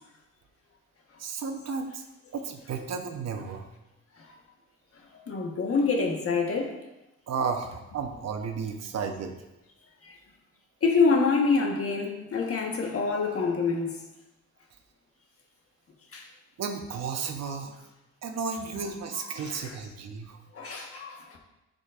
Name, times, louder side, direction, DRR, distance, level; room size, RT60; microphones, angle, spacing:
voice 1, 1.2-2.0 2.3-3.7 7.3-9.3 16.6-17.7 18.2-20.4, right 5 dB, 60° right, 1.0 m, -33 dB
voice 2, 5.3-6.7 10.0-10.1 10.8-13.9 16.1-16.2 19.1-19.8 20.5-21.2, left 4 dB, 50° left, 1.4 m, -26 dB
10.5 x 5.2 x 2.5 m
cardioid pair, 90°, 30 cm